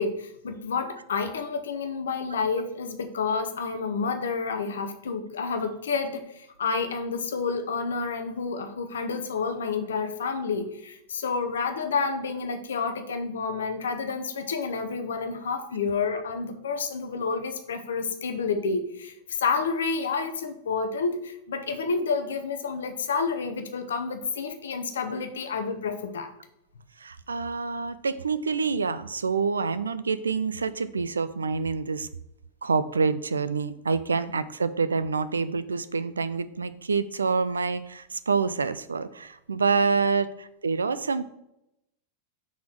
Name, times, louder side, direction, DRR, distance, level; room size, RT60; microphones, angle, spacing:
voice 1, 0.0-26.3, left 5 dB, 65° left, 7 dB, 0.8 m, -29 dB
voice 2, 27.0-32.1 32.6-41.2, right 4 dB, 75° right, 14 dB, 0.4 m, -27 dB
5.8 x 4.2 x 4.6 m, 0.83 s
figure-of-eight pair, 90°, 0 cm